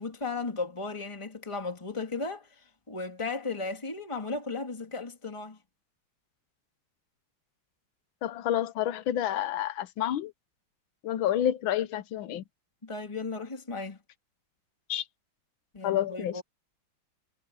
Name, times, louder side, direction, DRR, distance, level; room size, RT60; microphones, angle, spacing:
voice 1, 0.0-2.5 2.9-5.6 12.8-14.0 15.7-16.4, left 3 dB, 15° left, 2.5 m, -35 dB
voice 2, 8.2-10.3 11.0-12.4 14.9-15.0 15.8-16.4, left 11 dB, 75° left, 1.6 m, -29 dB
omnidirectional pair, 2.3 m